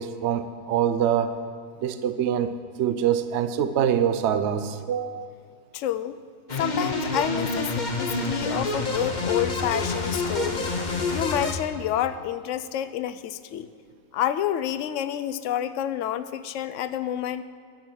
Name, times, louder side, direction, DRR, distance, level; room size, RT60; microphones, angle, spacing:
voice 1, 0.0-1.4 1.8-5.3, right 9 dB, 60° right, 10 dB, 0.8 m, -25 dB
voice 2, 5.7-6.2 6.6-10.7 11.1-13.7 14.1-17.4, left 11 dB, 65° left, 12 dB, 0.8 m, -28 dB
sound 1, 6.5-11.5, left 2 dB, 35° left, 1.0 m, -28 dB
12.0 x 6.2 x 8.4 m, 2.4 s
omnidirectional pair, 1.6 m